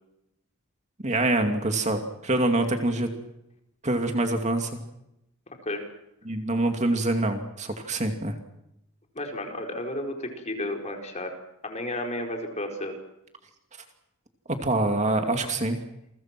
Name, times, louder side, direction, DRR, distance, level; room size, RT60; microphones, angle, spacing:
voice 1, 1.0-3.1 3.8-4.8 6.2-8.3 14.6-15.8, right 2 dB, 30° right, 5 dB, 2.5 m, -25 dB
voice 2, 9.1-11.3 11.6-12.9, left 1 dB, 30° left, 3 dB, 4.7 m, -32 dB
29.0 x 23.0 x 6.1 m, 0.86 s
head